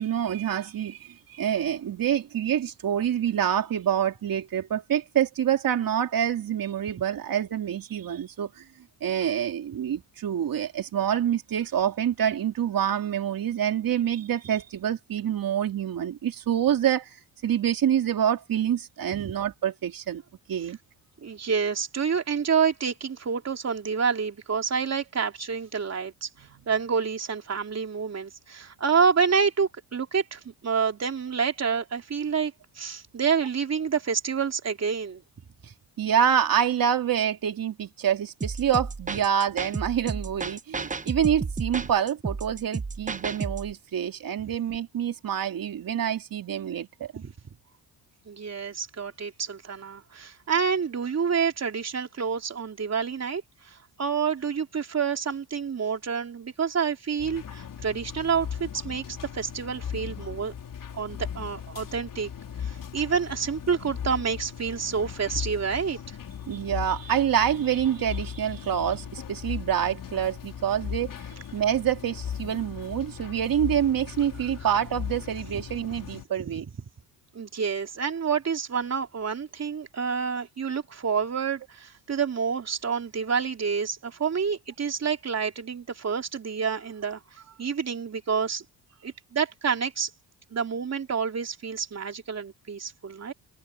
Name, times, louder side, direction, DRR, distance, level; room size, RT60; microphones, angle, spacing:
voice 1, 0.0-8.6 9.0-17.2 17.4-20.2 20.5-20.8 35.6-35.7 36.0-47.2 66.5-76.6, right 9 dB, 55° right, 3.1 m, -26 dB
voice 2, 21.2-35.2 47.2-47.3 48.2-60.5 60.9-62.3 62.6-66.2 77.3-88.6 89.0-90.1 90.5-93.3, right 6 dB, 40° right, 3.4 m, -28 dB
sound 1, 38.4-43.7, right 4 dB, 20° right, 1.0 m, -32 dB
sound 2, 57.2-76.2, left 8 dB, 55° left, 3.7 m, -38 dB
cardioid pair, 90°, 40 cm